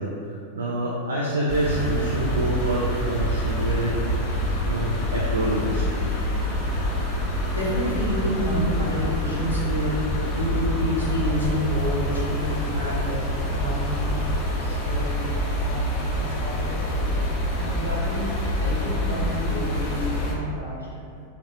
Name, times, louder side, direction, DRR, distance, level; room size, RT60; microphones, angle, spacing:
voice 1, 0.0-4.0 4.6-6.0, right 1 dB, 70° right, -6 dB, 0.3 m, -27 dB
sound 1, 1.5-20.3, equal, 40° left, 0.5 m, -26 dB
voice 2, 7.5-10.0 10.3-13.2 13.5-15.2 15.5-17.1 17.5-18.3 18.6-20.9, equal, 85° right, -8 dB, 0.7 m, -29 dB
3.0 x 2.0 x 2.8 m, 2.4 s
figure-of-eight pair, 90°, 0 cm